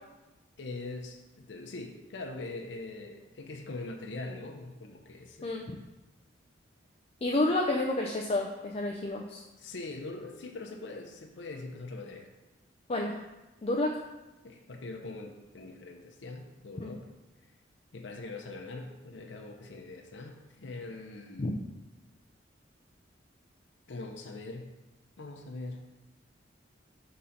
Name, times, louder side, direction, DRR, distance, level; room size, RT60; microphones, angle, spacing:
voice 1, 0.6-5.6 9.6-12.3 14.4-17.1 17.9-21.6 23.9-24.7 25.2-25.8, left 2 dB, 85° left, 2 dB, 0.7 m, -42 dB
voice 2, 5.4-5.8 7.2-9.4 12.9-13.2 13.6-14.0 16.8-16.9 21.4-21.5, left 2 dB, 35° left, 0 dB, 0.4 m, -30 dB
5.5 x 3.8 x 5.7 m, 1.1 s
head